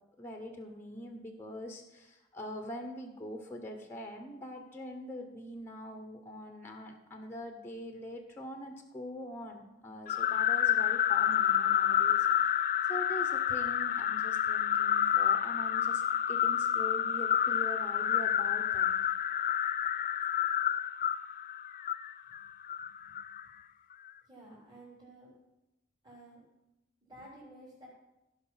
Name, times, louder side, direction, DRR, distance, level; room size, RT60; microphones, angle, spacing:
voice 1, 0.2-12.3 12.9-16.0 16.3-19.0, left 1 dB, 10° left, 4 dB, 1.0 m, -43 dB
sound 1, 10.1-23.4, left 10 dB, 45° left, 0.3 m, -29 dB
voice 2, 24.2-25.3 26.0-26.4 27.0-27.9, right 1 dB, 25° right, -10 dB, 3.6 m, -53 dB
16.0 x 5.6 x 5.7 m, 0.97 s
head